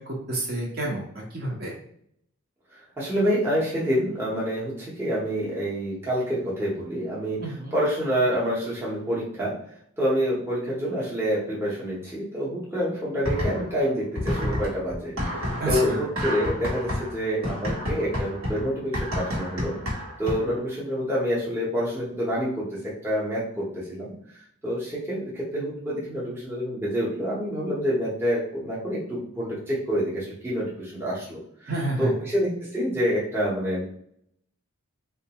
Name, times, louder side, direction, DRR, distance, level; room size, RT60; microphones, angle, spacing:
voice 1, 0.0-1.7 7.4-7.7 15.6-16.0 31.7-32.1, right 2 dB, 45° right, -3 dB, 0.9 m, -30 dB
voice 2, 2.7-7.4 7.7-9.5 10.0-15.1 15.7-19.8 20.2-24.1 24.6-31.7 32.0-33.8, equal, 10° right, -7 dB, 0.8 m, -27 dB
sound 1, 13.2-13.8 14.2-20.6, left 1 dB, 75° right, 1.2 m, -30 dB
3.8 x 2.3 x 2.9 m, 0.67 s
head